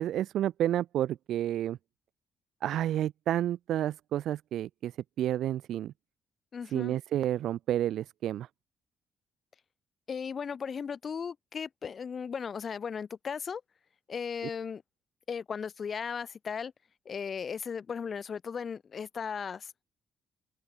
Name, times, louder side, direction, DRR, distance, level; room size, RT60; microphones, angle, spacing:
voice 1, 0.0-1.8 2.6-4.9 5.2-5.9 6.7-8.5, right 12 dB, 75° right, 0.6 m, -30 dB
voice 2, 6.5-6.9 10.1-13.6 14.1-14.8 15.3-16.7 17.0-19.7, left 6 dB, 45° left, 1.5 m, -36 dB
cardioid pair, 90°, 0 cm